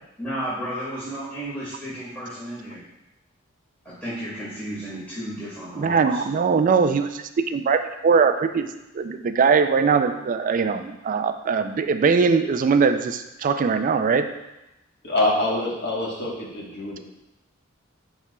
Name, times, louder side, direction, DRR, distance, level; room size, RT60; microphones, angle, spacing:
voice 1, 0.2-2.8 3.8-6.2, equal, 10° left, -11 dB, 1.9 m, -33 dB
voice 2, 5.8-8.7 8.9-14.3, right 5 dB, 40° right, 9 dB, 0.3 m, -21 dB
voice 3, 15.0-17.0, left 2 dB, 55° left, -4 dB, 1.3 m, -25 dB
10.5 x 4.3 x 2.3 m, 0.95 s
head